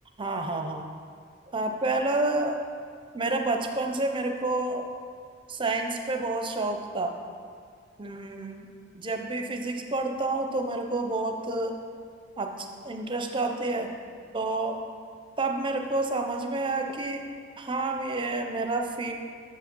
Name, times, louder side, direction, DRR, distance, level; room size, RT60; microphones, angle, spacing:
voice 1, 0.2-0.8 1.5-2.6 3.1-4.9 5.5-7.1 8.0-8.7 8.9-11.8 12.4-13.9 14.3-14.8 15.4-17.2 17.6-19.1, right 2 dB, 25° right, 4 dB, 0.6 m, -29 dB
7.2 x 5.1 x 5.2 m, 2.1 s
head